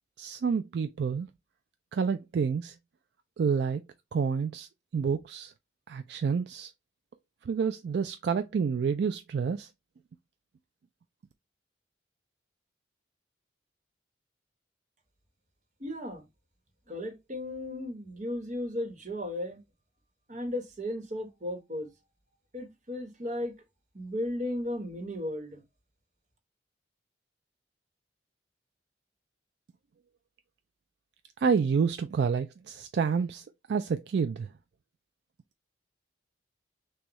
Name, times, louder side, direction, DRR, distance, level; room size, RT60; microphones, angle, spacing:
voice 1, 0.2-1.3 1.9-2.8 3.4-3.8 4.1-4.7 4.9-5.5 5.9-6.7 7.5-9.7 31.4-34.5, right 6 dB, 65° right, 0.3 m, -28 dB
voice 2, 15.8-16.3 16.9-19.6 20.3-21.9 22.5-23.5 23.9-25.6, left 1 dB, 40° right, 1.1 m, -35 dB
6.1 x 2.3 x 3.0 m
head